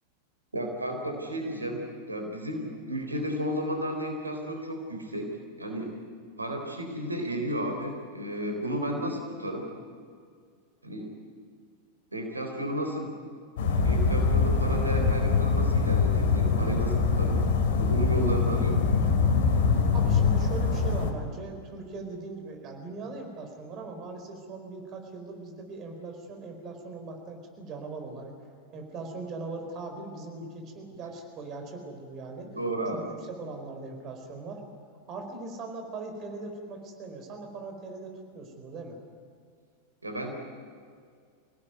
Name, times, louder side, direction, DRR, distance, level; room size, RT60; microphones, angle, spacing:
voice 1, 0.5-5.3 5.6-5.9 6.4-9.7 10.8-11.2 12.1-13.1 13.8-17.5 17.7-18.9 32.4-33.1 40.0-40.4, right 1 dB, 80° right, 3 dB, 3.8 m, -33 dB
sound 1, 13.6-21.1, left 5 dB, 55° left, 2.7 m, -24 dB
voice 2, 19.9-28.3 28.7-32.5 33.4-34.6 35.1-39.0, right 3 dB, 35° right, 4 dB, 4.5 m, -40 dB
26.5 x 17.5 x 9.4 m, 2.1 s
figure-of-eight pair, 90°, 0 cm